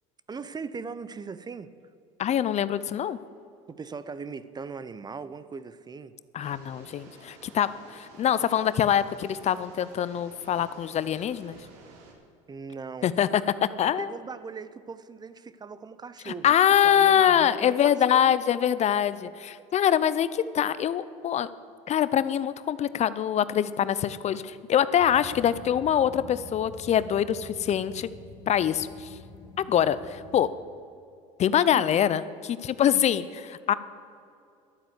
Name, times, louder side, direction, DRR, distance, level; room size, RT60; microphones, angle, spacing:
voice 1, 0.3-1.7 3.7-6.2 12.5-13.1 14.0-16.6 16.8-18.4 31.7-31.8, right 5 dB, 25° right, 15 dB, 0.7 m, -39 dB
voice 2, 2.2-3.2 6.3-11.6 13.0-14.1 16.3-21.5 21.9-28.1 28.5-29.1 29.7-30.5 31.4-33.7, left 9 dB, 40° left, 15 dB, 0.5 m, -24 dB
sound 1, 6.4-12.1, right 3 dB, 80° right, 2.3 m, -52 dB
sound 2, 25.0-30.5, left 2 dB, 75° left, 2.5 m, -46 dB
12.0 x 8.8 x 8.1 m, 2.5 s
hypercardioid pair, 85°, 17 cm